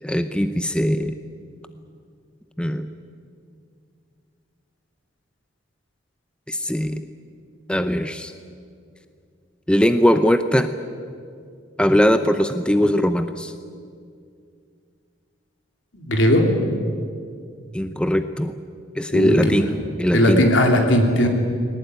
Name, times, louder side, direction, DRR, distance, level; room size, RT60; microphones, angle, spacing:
voice 1, 0.0-1.2 2.6-2.9 6.5-7.0 7.7-8.3 9.7-10.7 11.8-13.5 17.7-18.5 19.0-19.7 20.0-20.4, equal, 5° left, 9 dB, 0.6 m, -20 dB
voice 2, 15.9-16.4 19.1-19.6 20.1-21.3, left 1 dB, 75° left, 3 dB, 3.4 m, -18 dB
21.0 x 18.5 x 9.3 m, 2.3 s
head